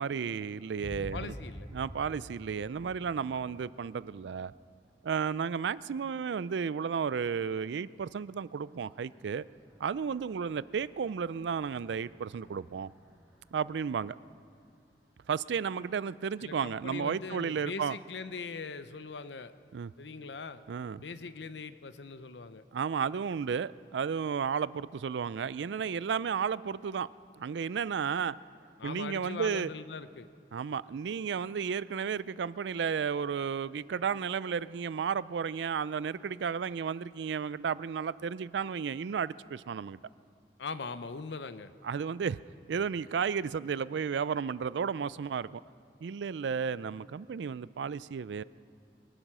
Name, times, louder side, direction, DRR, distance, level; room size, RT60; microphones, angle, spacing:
voice 1, 0.0-1.3 1.7-4.5 5.0-9.4 9.8-12.9 13.5-14.2 15.3-18.0 19.7-19.9 20.7-21.0 22.7-27.1 27.4-28.4 28.8-29.7 30.5-40.0 41.8-42.4 42.7-45.6 46.0-48.4, right 6 dB, 90° right, 18 dB, 0.4 m, -33 dB
sound 1, 0.8-4.0 4.2-4.5, equal, 40° right, 2.9 m, -45 dB
voice 2, 1.1-1.7 16.4-19.5 20.0-20.6 21.0-22.6 28.8-30.3 40.6-41.7, left 4 dB, 90° left, 12 dB, 0.7 m, -41 dB
sound 2, 7.5-15.9, equal, 5° right, 2.5 m, -66 dB
23.0 x 10.0 x 6.1 m, 2.4 s
head